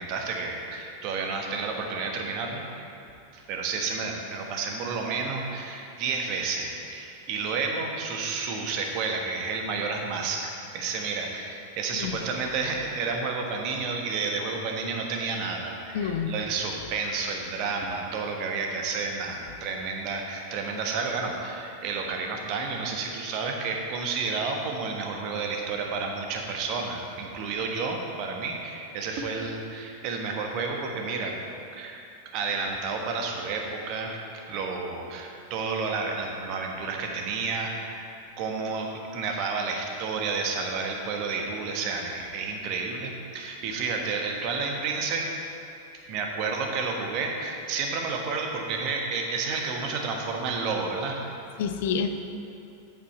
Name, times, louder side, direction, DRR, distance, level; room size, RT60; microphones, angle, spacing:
voice 1, 0.0-2.6 3.3-31.4 31.8-32.0 32.3-34.2 34.5-38.1 38.4-45.3 45.9-51.2, right 4 dB, 40° right, 2 dB, 1.3 m, -31 dB
voice 2, 15.9-16.3 51.6-52.1, left 7 dB, 55° left, 7 dB, 0.6 m, -28 dB
8.5 x 8.3 x 4.3 m, 2.8 s
figure-of-eight pair, 90°, 0 cm